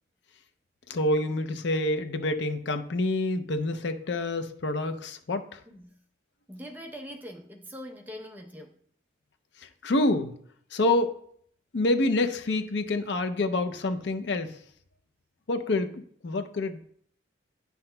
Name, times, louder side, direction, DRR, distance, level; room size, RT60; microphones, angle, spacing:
voice 1, 0.9-5.6 9.6-10.3 10.7-11.1 11.7-14.6 15.5-15.9 16.2-16.9, left 2 dB, 70° left, 8 dB, 0.5 m, -27 dB
voice 2, 6.5-8.8, equal, 10° right, 1 dB, 0.7 m, -42 dB
10.5 x 5.8 x 2.2 m, 0.63 s
head